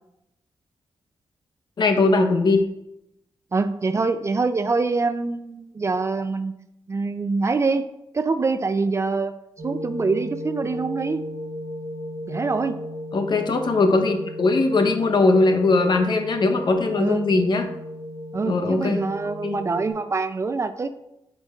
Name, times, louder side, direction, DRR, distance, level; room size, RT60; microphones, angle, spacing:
voice 1, 1.8-2.6 13.1-17.7 18.5-19.0 19.4-19.6, left 3 dB, 55° left, 5 dB, 0.8 m, -20 dB
voice 2, 3.5-6.5 6.9-7.9 8.1-9.3 9.6-11.2 12.3-12.8 17.0-17.3 18.3-20.9, right 4 dB, 30° right, 10 dB, 0.4 m, -25 dB
sound 1, 9.6-19.9, equal, 65° right, 1.2 m, -35 dB
8.5 x 5.3 x 2.4 m, 0.85 s
wide cardioid pair, 115°, 9 cm